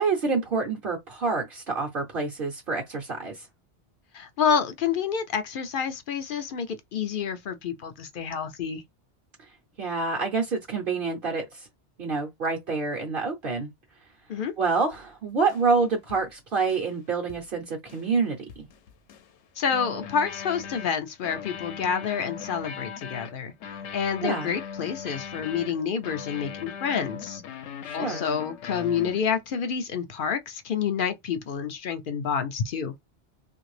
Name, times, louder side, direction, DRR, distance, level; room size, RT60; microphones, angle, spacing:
voice 1, 0.0-3.5 9.8-11.7 12.0-13.7 14.6-18.7 24.2-24.5 27.8-28.2, right 4 dB, 55° right, 0.9 m, -27 dB
voice 2, 4.1-8.8 14.3-14.5 19.6-23.5 23.9-27.4 27.9-33.0, left 7 dB, 60° left, 0.6 m, -28 dB
sound 1, 14.9-15.1 15.5-15.8 16.1-16.3 16.7-17.0 17.3-17.5 17.9-18.2 18.5-19.4 19.7-29.5, left 7 dB, 85° left, 0.9 m, -40 dB
2.8 x 2.5 x 3.2 m
omnidirectional pair, 1.2 m